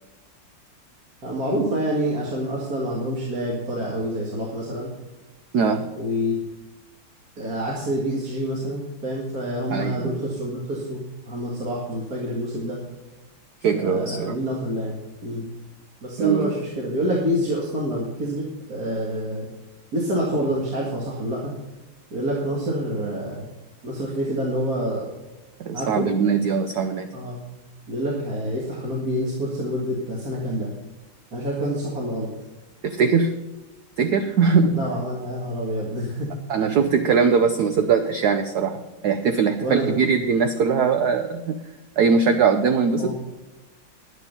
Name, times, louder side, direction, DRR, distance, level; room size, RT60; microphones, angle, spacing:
voice 1, 1.2-4.9 6.0-6.4 7.4-12.8 13.8-15.0 15.2-15.5 16.0-18.4 18.7-19.5 19.9-21.5 22.1-23.5 23.8-25.1 25.7-26.1 27.1-27.4 27.9-30.7 31.3-32.3 34.8-36.3 36.8-36.9 39.6-39.9 43.0-43.1, equal, 45° right, -4 dB, 2.4 m, -27 dB
voice 2, 5.5-5.9 9.7-10.1 13.6-14.3 16.2-16.5 25.6-27.1 32.8-33.3 34.0-34.8 36.5-41.6 42.0-43.1, right 5 dB, 65° right, 7 dB, 1.0 m, -21 dB
10.5 x 9.7 x 5.4 m, 1.1 s
omnidirectional pair, 2.4 m